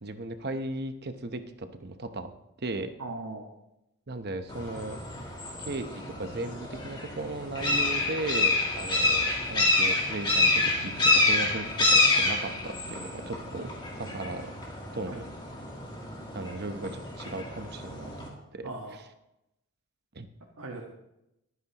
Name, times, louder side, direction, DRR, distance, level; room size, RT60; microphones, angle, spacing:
voice 1, 0.0-2.3 2.6-2.9 4.1-5.0 5.6-13.7 14.0-14.5 14.9-15.2 16.3-18.1 18.5-18.7 20.1-20.3, right 2 dB, 45° right, 8 dB, 0.9 m, -36 dB
voice 2, 3.0-3.5 13.6-13.7 15.1-15.2 18.6-19.0 20.6-20.9, right 2 dB, 80° right, 0 dB, 1.6 m, -39 dB
sound 1, 4.5-18.3, left 2 dB, 20° left, 2.4 m, -28 dB
23.0 x 9.5 x 3.0 m, 0.88 s
head